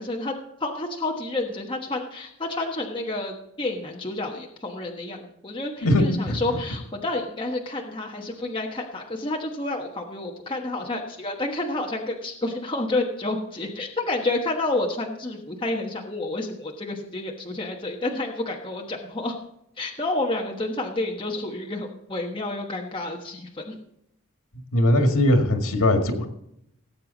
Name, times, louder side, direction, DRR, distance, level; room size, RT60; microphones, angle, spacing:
voice 1, 0.0-19.4 19.8-23.7, left 2 dB, 20° left, 0 dB, 1.2 m, -29 dB
voice 2, 5.8-6.6 24.7-26.3, left 1 dB, 90° left, 4 dB, 1.9 m, -20 dB
18.0 x 7.8 x 4.0 m, 0.77 s
head